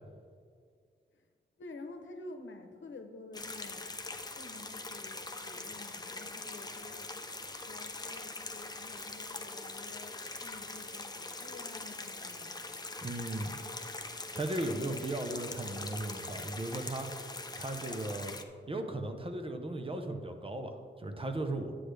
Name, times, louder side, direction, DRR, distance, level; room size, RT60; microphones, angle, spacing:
voice 1, 1.6-3.9 4.3-7.2 7.7-12.6, left 2 dB, 90° left, 5 dB, 0.9 m, -50 dB
sound 1, 3.3-18.4, left 3 dB, 20° left, 0.5 m, -42 dB
voice 2, 13.0-13.6 14.3-17.1 17.6-18.4 18.7-21.7, right 1 dB, 30° right, 5 dB, 0.7 m, -36 dB
9.9 x 7.8 x 3.3 m, 2.1 s
wide cardioid pair, 130°, 19 cm